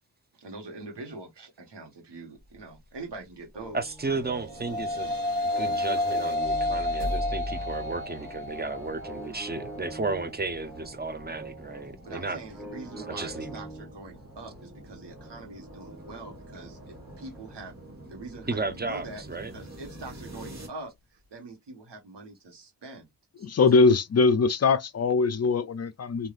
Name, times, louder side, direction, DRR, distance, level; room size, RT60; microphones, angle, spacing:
voice 1, 0.3-4.2 12.0-17.7 18.1-23.1, right 3 dB, 75° right, 1.3 m, -43 dB
sound 1, 3.5-17.6, right 2 dB, ahead, 0.9 m, -46 dB
voice 2, 3.7-12.4 13.0-13.6 18.5-19.5, right 3 dB, 25° right, 0.6 m, -34 dB
sound 2, 4.2-13.4, left 1 dB, 55° right, 1.5 m, -32 dB
sound 3, 4.9-20.7, equal, 40° right, 1.5 m, -43 dB
voice 3, 23.4-26.3, left 4 dB, 40° left, 0.4 m, -22 dB
3.3 x 2.7 x 2.4 m
wide cardioid pair, 65°, 42 cm